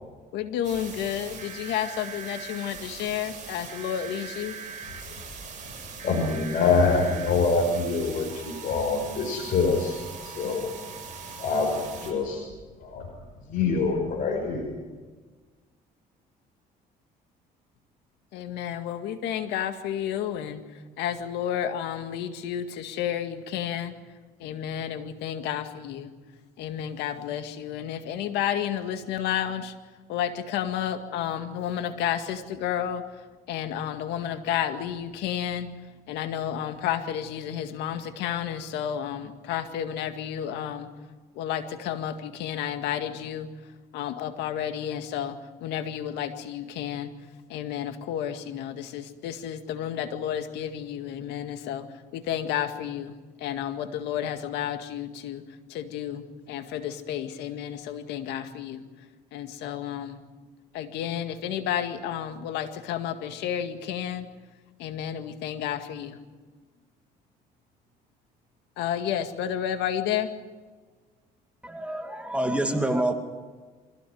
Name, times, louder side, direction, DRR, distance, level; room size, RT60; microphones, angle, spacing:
voice 1, 0.3-4.6 18.3-20.6 21.0-23.9 24.4-26.1 26.6-29.7 30.1-33.1 33.5-35.7 36.1-40.9 41.4-43.5 43.9-47.1 47.5-51.9 52.1-55.4 55.7-58.8 59.3-60.2 60.7-64.3 64.8-66.2 68.8-70.3, left 10 dB, 90° left, 8 dB, 2.1 m, -31 dB
sound 1, 0.6-12.1, right 6 dB, 45° right, 7.9 m, -41 dB
voice 2, 6.0-10.0 10.2-10.7 11.4-12.4 12.8-13.1 13.5-14.7, left 4 dB, 55° left, 0 dB, 5.7 m, -25 dB
voice 3, 71.6-73.1, right 1 dB, 5° right, 5 dB, 2.3 m, -27 dB
25.5 x 16.5 x 9.5 m, 1.4 s
cardioid pair, 110°, 17 cm